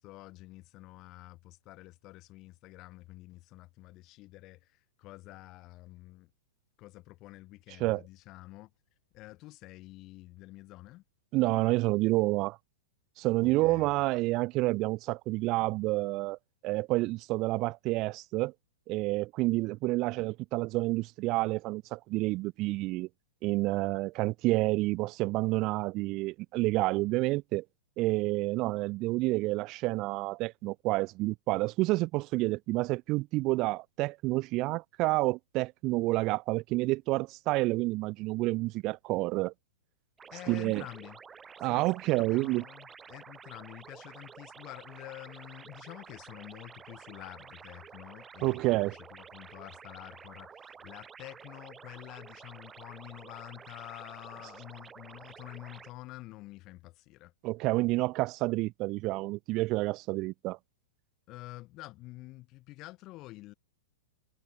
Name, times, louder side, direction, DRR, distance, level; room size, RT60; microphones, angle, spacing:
voice 1, 0.0-6.3 6.8-8.7 9.1-11.0 13.4-14.0 40.3-41.2 41.6-41.9 42.1-57.3 61.3-63.5, left 19 dB, 35° left, 3.6 m, -48 dB
voice 2, 11.3-12.6 13.2-16.4 16.6-18.5 18.9-23.1 23.4-27.6 28.0-39.5 40.5-40.8 41.6-42.6 48.4-49.0 57.4-60.6, right 21 dB, 35° right, 0.6 m, -29 dB
sound 1, 40.2-55.9, right 6 dB, 15° right, 1.1 m, -51 dB
figure-of-eight pair, 105°, 0 cm